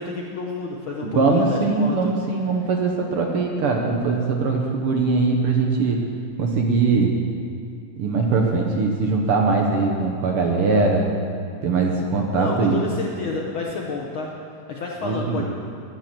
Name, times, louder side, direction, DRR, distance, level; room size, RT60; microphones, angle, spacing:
voice 1, 0.0-2.1 12.3-14.3 14.7-15.4, left 3 dB, 65° left, -1 dB, 1.3 m, -29 dB
voice 2, 1.0-6.0 6.4-7.1 8.0-11.1 11.6-12.9 15.0-15.4, right 4 dB, 65° right, 1 dB, 1.6 m, -21 dB
10.5 x 10.5 x 7.5 m, 2.4 s
omnidirectional pair, 3.3 m